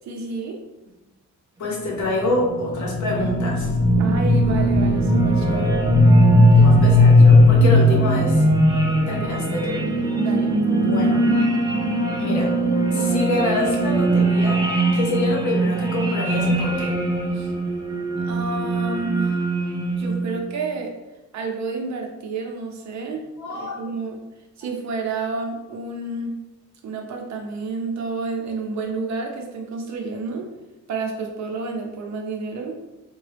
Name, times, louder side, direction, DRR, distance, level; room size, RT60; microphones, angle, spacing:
voice 1, 0.0-0.6 0.9-1.0 4.0-5.8 6.3-6.8 10.2-10.5 17.3-17.5 18.2-19.5 20.0-20.9 21.3-24.2 24.6-26.4 26.8-30.5 30.9-32.8, right 4 dB, 60° right, 2 dB, 0.7 m, -30 dB
voice 2, 1.6-4.1 6.6-8.4 9.1-9.8 10.7-11.3 12.2-12.5 12.9-14.6 14.9-16.9 23.4-23.9, left 2 dB, 65° left, -1 dB, 0.9 m, -26 dB
sound 1, 2.0-20.4, equal, 15° right, 0.3 m, -18 dB
3.7 x 2.2 x 3.3 m, 1.0 s
cardioid pair, 175°, 32 cm